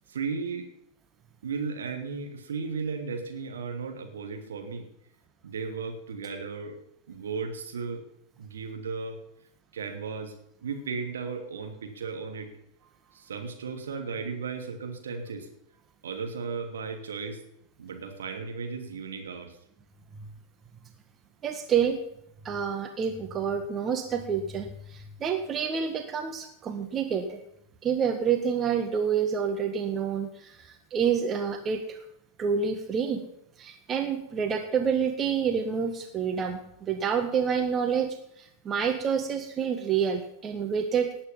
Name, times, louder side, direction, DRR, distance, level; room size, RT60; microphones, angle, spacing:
voice 1, 0.1-0.7 1.4-4.9 5.4-6.8 7.1-8.0 8.4-9.2 9.7-10.3 10.6-12.5 13.1-15.5 16.0-17.4 17.8-19.6, right 5 dB, 65° right, 4 dB, 2.8 m, -35 dB
voice 2, 21.4-22.0 22.5-27.4 27.8-32.0 32.4-33.2 33.6-41.1, right 7 dB, 25° right, 6 dB, 1.6 m, -28 dB
18.5 x 8.8 x 5.6 m, 0.78 s
figure-of-eight pair, 90°, 0 cm